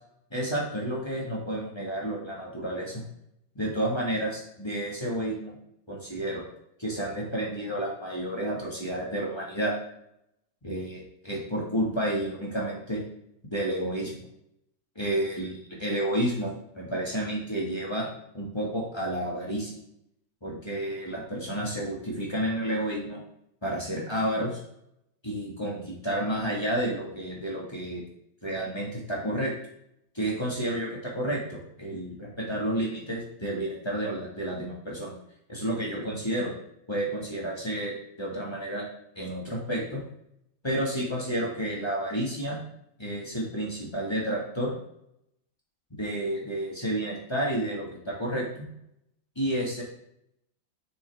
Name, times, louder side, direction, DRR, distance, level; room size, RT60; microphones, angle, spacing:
voice 1, 0.3-3.0 3.5-5.6 5.9-6.4 6.8-9.7 10.6-13.0 13.5-14.2 14.9-18.1 18.3-19.8 20.4-23.2 23.6-24.6 25.2-28.0 28.4-29.5 30.1-35.1 35.5-36.5 36.9-38.8 39.1-40.0 40.6-42.6 43.0-44.8 45.9-48.6 49.3-49.8, right 1 dB, 15° left, -4 dB, 1.7 m, -30 dB
7.0 x 6.6 x 3.5 m, 0.75 s
omnidirectional pair, 2.1 m